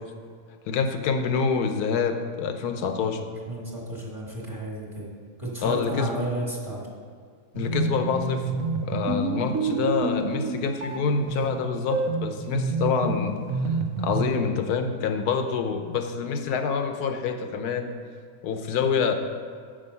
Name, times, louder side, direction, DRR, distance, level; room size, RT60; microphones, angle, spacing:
voice 1, 0.7-3.3 5.6-6.1 7.5-8.5 8.8-13.4 13.7-17.9 18.4-19.2, left 5 dB, 80° left, 7 dB, 1.2 m, -26 dB
voice 2, 3.5-5.1 5.4-6.8, right 1 dB, 20° right, -4 dB, 1.6 m, -32 dB
sound 1, 7.5-14.4, right 3 dB, 65° right, 1.1 m, -28 dB
8.6 x 6.2 x 5.4 m, 2.1 s
omnidirectional pair, 1.7 m